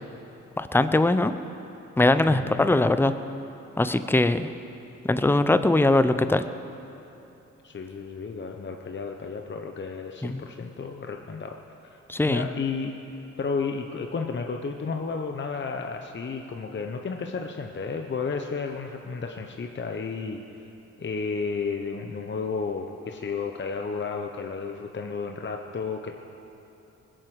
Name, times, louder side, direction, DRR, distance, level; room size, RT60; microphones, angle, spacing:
voice 1, 0.6-1.3 2.0-3.1 3.8-4.5 5.0-6.5 10.2-10.4 12.1-12.5, left 2 dB, 5° left, 11 dB, 0.7 m, -21 dB
voice 2, 2.3-2.7 7.6-11.6 11.9-12.0 12.3-12.9 13.4-20.4 21.0-26.1, left 5 dB, 40° left, 4 dB, 1.0 m, -32 dB
20.0 x 7.9 x 8.0 m, 3.0 s
cardioid pair, 70°, 30 cm